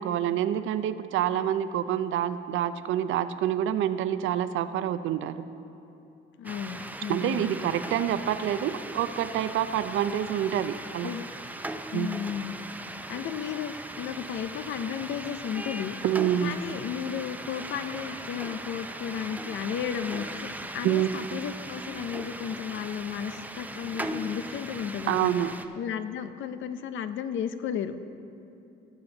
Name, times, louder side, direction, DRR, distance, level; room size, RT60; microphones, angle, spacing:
voice 1, 0.0-5.3 7.1-11.1 11.9-12.1 16.0-16.6 20.8-21.1 25.1-25.5, right 10 dB, 80° right, 12 dB, 0.5 m, -27 dB
voice 2, 6.4-7.6 11.0-11.3 11.9-12.5 13.1-16.0 16.4-25.3 25.8-28.0, left 8 dB, 75° left, 11 dB, 0.6 m, -34 dB
sound 1, 6.4-25.7, right 1 dB, 10° right, 0.5 m, -39 dB
17.5 x 7.1 x 3.9 m, 2.9 s
cardioid pair, 90°, 20 cm